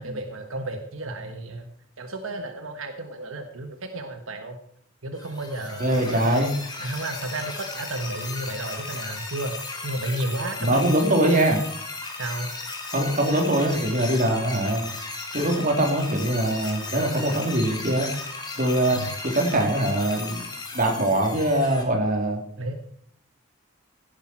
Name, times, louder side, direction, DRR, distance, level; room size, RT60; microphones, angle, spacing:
voice 1, 0.0-1.7 2.0-4.6 5.0-6.5 6.8-9.6 9.8-11.4 12.2-12.5 16.9-17.4 18.9-19.2 22.6-22.7, right 1 dB, 80° right, 6 dB, 1.4 m, -33 dB
sound 1, 5.2-21.8, left 3 dB, 20° left, 3.0 m, -36 dB
voice 2, 5.8-6.5 10.6-11.6 12.9-14.8 15.3-18.1 18.6-20.4 20.7-22.4, right 1 dB, 45° right, 2 dB, 3.3 m, -22 dB
16.5 x 10.5 x 4.5 m, 0.65 s
head